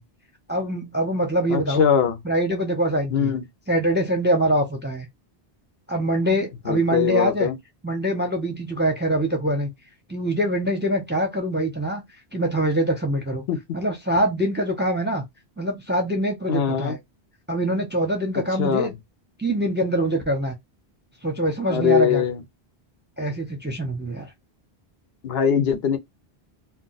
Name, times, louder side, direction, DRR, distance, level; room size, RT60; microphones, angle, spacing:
voice 1, 0.5-1.9 2.2-3.3 3.7-5.1 5.9-7.5 7.8-9.7 10.1-12.0 12.3-13.4 13.7-15.2 15.6-17.0 17.5-18.9 19.4-20.6 21.2-22.2 23.2-24.3, right 1 dB, 15° right, 0.5 m, -24 dB
voice 2, 1.5-2.2 3.1-3.4 6.7-7.6 13.5-13.6 16.5-17.0 18.6-18.9 21.7-22.4 25.2-26.0, left 8 dB, 75° left, 0.8 m, -21 dB
2.3 x 2.2 x 3.8 m
omnidirectional pair, 1.1 m